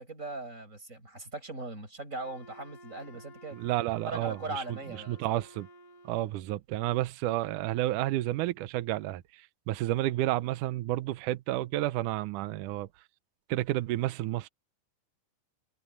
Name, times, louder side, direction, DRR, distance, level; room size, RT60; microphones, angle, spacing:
voice 1, 0.0-3.7 4.0-5.4, right 2 dB, 20° right, 6.8 m, -40 dB
Wind instrument woodwind instrument, 2.2-6.5, equal, 85° left, 4.6 m, -53 dB
voice 2, 3.5-4.6 5.1-5.7 6.1-12.9 13.5-14.5, right 15 dB, 75° right, 1.9 m, -31 dB
omnidirectional pair, 4.4 m